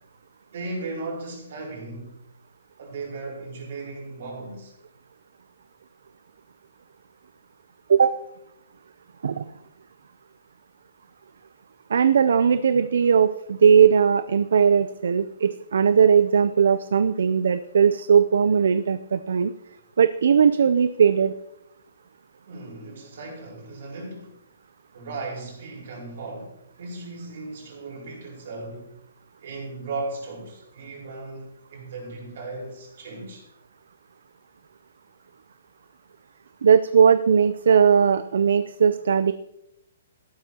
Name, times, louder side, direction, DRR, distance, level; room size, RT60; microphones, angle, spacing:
voice 1, 0.5-2.1 2.8-4.7 22.5-24.3 24.9-28.9 29.4-33.5, right 3 dB, 55° right, 4.7 m, -36 dB
voice 2, 11.9-19.5 20.0-21.3 36.6-39.3, right 7 dB, 70° right, 0.5 m, -19 dB
14.5 x 12.0 x 2.9 m
hypercardioid pair, 165°, 0 cm